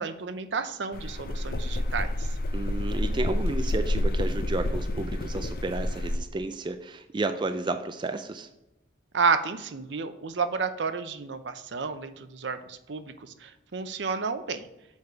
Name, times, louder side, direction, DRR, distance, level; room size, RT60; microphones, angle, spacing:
voice 1, 0.0-2.3 9.1-14.7, right 5 dB, 75° right, 10 dB, 0.6 m, -31 dB
sound 1, 0.9-6.2, left 1 dB, 55° left, 0.6 m, -29 dB
voice 2, 2.5-8.5, right 2 dB, 25° right, 8 dB, 0.3 m, -32 dB
7.2 x 4.7 x 4.6 m, 0.92 s
head